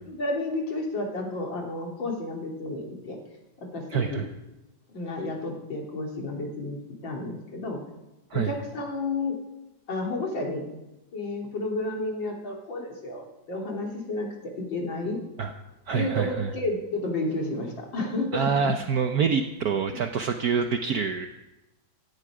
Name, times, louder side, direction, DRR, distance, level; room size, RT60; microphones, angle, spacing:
voice 1, 0.1-3.2 3.6-4.2 4.9-6.8 7.0-7.8 8.3-9.3 9.9-10.6 11.1-14.3 14.6-15.2 15.9-18.5, left 2 dB, 75° left, 0 dB, 3.8 m, -31 dB
voice 2, 3.9-4.3 8.3-8.5 15.4-15.5 15.9-16.5 18.3-21.3, right 6 dB, 60° right, 6 dB, 1.2 m, -26 dB
16.5 x 16.0 x 4.9 m, 1.0 s
omnidirectional pair, 2.1 m